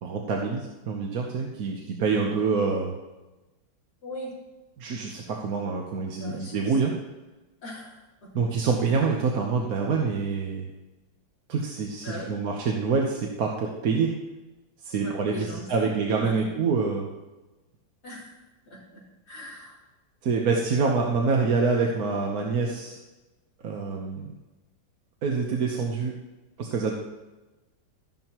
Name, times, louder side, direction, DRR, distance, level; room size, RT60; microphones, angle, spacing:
voice 1, 0.0-2.9 4.8-6.9 8.3-10.7 11.5-14.1 14.8-17.1 20.2-23.0 23.6-24.3 25.2-26.1 26.6-27.0, right 4 dB, 55° right, 0 dB, 1.3 m, -26 dB
voice 2, 4.0-4.3 6.1-7.0 7.6-8.3 12.0-12.3 14.9-16.5 18.0-19.8, left 1 dB, 55° left, -6 dB, 3.8 m, -41 dB
13.0 x 11.0 x 3.0 m, 1.1 s
omnidirectional pair, 2.1 m